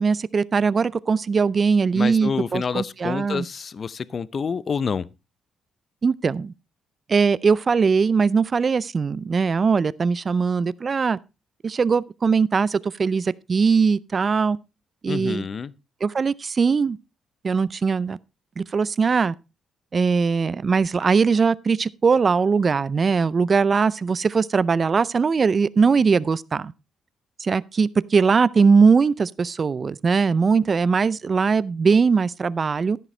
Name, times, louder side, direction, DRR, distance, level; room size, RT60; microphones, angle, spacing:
voice 1, 0.0-3.5 6.0-6.5 7.1-11.2 11.6-14.6 15.0-15.5 16.0-17.0 17.4-18.2 18.6-19.3 19.9-26.7 27.4-33.0, right 5 dB, 40° right, 0.5 m, -20 dB
voice 2, 1.9-5.1 15.1-15.7, left 6 dB, 45° left, 0.6 m, -28 dB
11.5 x 10.5 x 3.2 m
cardioid pair, 90°, 0 cm